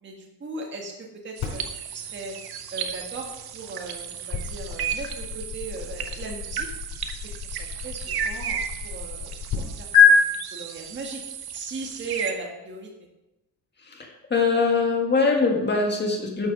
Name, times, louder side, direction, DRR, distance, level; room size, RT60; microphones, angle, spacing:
voice 1, 0.0-1.6 1.9-2.3 2.7-6.7 7.4-9.9 10.2-11.2 11.5-12.9, right 3 dB, 25° right, 0 dB, 1.7 m, -37 dB
sound 1, 1.4-9.6 9.9-10.1, left 9 dB, 55° left, 5.1 m, -27 dB
sound 2, 1.4-12.3, right 8 dB, 60° right, 1.2 m, -34 dB
voice 2, 13.9-16.5, left 4 dB, 25° left, 1 dB, 1.9 m, -23 dB
12.0 x 7.2 x 6.1 m, 0.96 s
cardioid pair, 170°, 42 cm